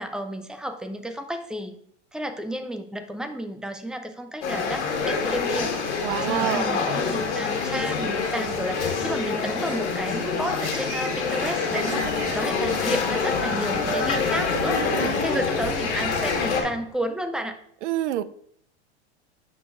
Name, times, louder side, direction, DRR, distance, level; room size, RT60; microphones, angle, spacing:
voice 1, 0.0-1.8 2.1-5.7 6.1-17.6, equal, ahead, 6 dB, 0.3 m, -32 dB
sound 1, 4.4-16.6, left 5 dB, 75° left, 1.5 m, -26 dB
voice 2, 6.0-6.7 11.9-12.1 14.7-15.2 17.8-18.2, right 12 dB, 85° right, 15 dB, 0.5 m, -28 dB
sound 2, 8.5-8.6 11.0-11.2 11.6-16.8, left 2 dB, 25° left, 1.2 m, -37 dB
sound 3, 8.7-14.0, right 2 dB, 40° right, 2.1 m, -39 dB
11.5 x 3.9 x 2.5 m, 0.68 s
supercardioid pair, 120°, 34 cm